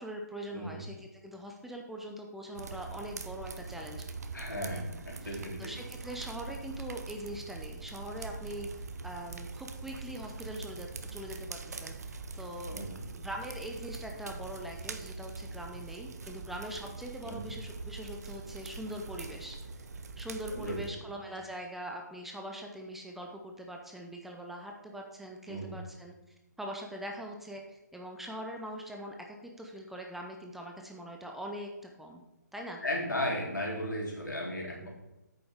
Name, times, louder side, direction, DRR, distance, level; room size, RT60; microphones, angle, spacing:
voice 1, 0.0-4.1 5.2-12.8 13.1-19.6 20.2-26.1 26.6-32.2 32.5-32.8 34.8-34.9, equal, 5° right, 1 dB, 0.5 m, -42 dB
sound 1, 2.6-20.9, right 4 dB, 60° right, 0.8 m, -43 dB
voice 2, 4.3-5.7 12.7-13.0 17.2-17.5 20.5-20.8 25.5-25.8 32.8-34.9, left 1 dB, 80° left, -2 dB, 3.1 m, -35 dB
8.9 x 6.8 x 3.5 m, 0.97 s
figure-of-eight pair, 135°, 10 cm